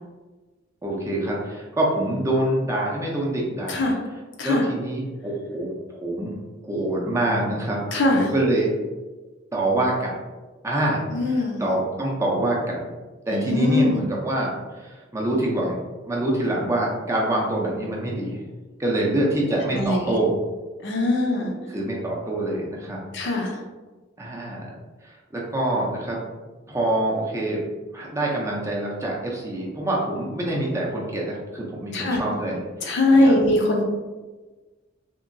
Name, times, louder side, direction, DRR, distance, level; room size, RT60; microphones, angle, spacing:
voice 1, 0.8-3.9 4.4-6.3 6.6-7.8 8.1-8.7 9.5-10.1 10.6-11.0 11.6-12.8 13.3-15.8 16.0-18.4 18.8-20.4 21.7-23.0 24.2-24.7 25.0-26.2 26.7-27.6 27.9-33.0 33.2-33.4, right 1 dB, 15° right, -3 dB, 0.5 m, -25 dB
voice 2, 7.9-8.3 11.1-11.6 13.3-14.0 19.7-20.1 20.8-21.5 23.1-23.6 31.9-32.2 32.8-33.8, left 2 dB, 65° left, 0 dB, 0.6 m, -21 dB
2.9 x 2.6 x 2.6 m, 1.3 s
head